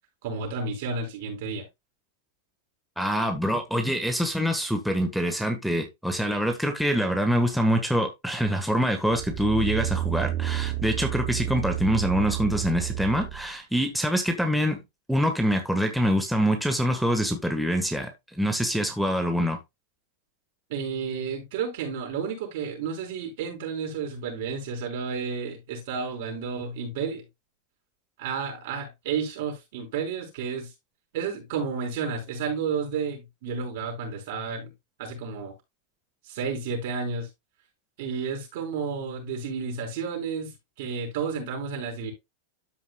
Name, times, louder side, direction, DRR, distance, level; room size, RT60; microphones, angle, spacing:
voice 1, 0.2-1.7 20.7-27.2 28.2-30.7 31.1-34.7 35.0-35.5 36.2-37.3 38.0-40.5 40.8-42.1, right 5 dB, 65° right, 5.1 m, -31 dB
voice 2, 3.0-14.8 15.1-19.6, equal, ahead, 1.4 m, -25 dB
sound 1, 9.2-13.5 14.0-14.1, right 14 dB, 50° right, 0.7 m, -30 dB
13.0 x 5.3 x 2.3 m
hypercardioid pair, 120°, 0 cm